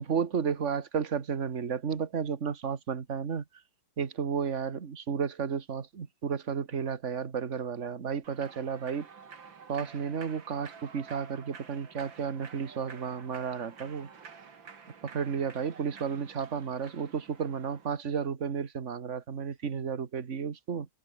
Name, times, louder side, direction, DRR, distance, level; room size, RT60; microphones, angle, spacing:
voice 1, 0.0-3.4 4.0-9.1 9.7-14.1 15.0-20.9, right 6 dB, 35° right, 1.8 m, -32 dB
Human voice / Clapping / Cheering, 8.2-18.0, right 6 dB, 60° right, 3.1 m, -50 dB
omnidirectional pair, 2.3 m